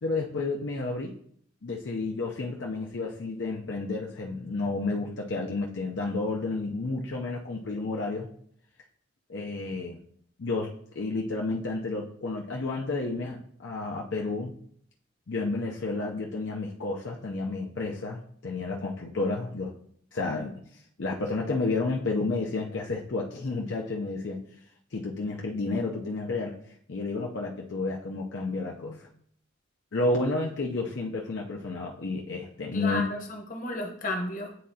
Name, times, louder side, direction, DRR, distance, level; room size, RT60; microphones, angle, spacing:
voice 1, 0.0-1.1 1.6-8.3 9.3-10.0 10.4-14.5 15.3-19.7 20.1-20.6 21.0-24.4 24.9-26.6 26.9-29.1 29.9-33.0, left 3 dB, 70° left, -1 dB, 0.6 m, -31 dB
voice 2, 32.7-34.6, left 1 dB, 45° left, 2 dB, 1.1 m, -33 dB
9.4 x 3.8 x 2.8 m, 0.64 s
head